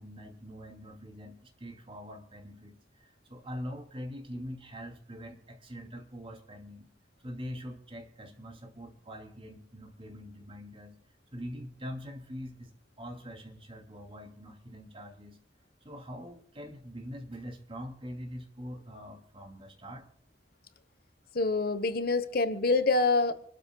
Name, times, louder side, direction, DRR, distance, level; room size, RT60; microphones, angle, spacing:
voice 1, 0.0-6.9 7.2-11.0 11.3-15.4 15.8-20.0, equal, 30° right, 2.8 m, -43 dB
voice 2, 21.3-23.3, left 3 dB, 55° left, 1.2 m, -26 dB
28.5 x 13.0 x 2.3 m
head